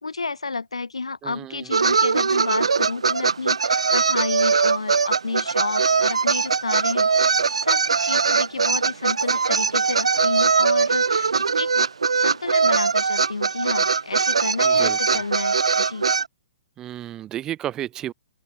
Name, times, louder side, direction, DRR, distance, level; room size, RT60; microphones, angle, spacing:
voice 1, 0.0-7.1 7.4-11.3 11.6-11.9 12.1-16.1, left 4 dB, 75° left, 3.0 m, -31 dB
voice 2, 1.2-1.7 14.6-15.2 16.8-18.1, right 12 dB, 20° right, 1.6 m, -33 dB
sound 1, 1.7-16.3, right 5 dB, 70° right, 0.4 m, -21 dB
open air
figure-of-eight pair, 120°, 3 cm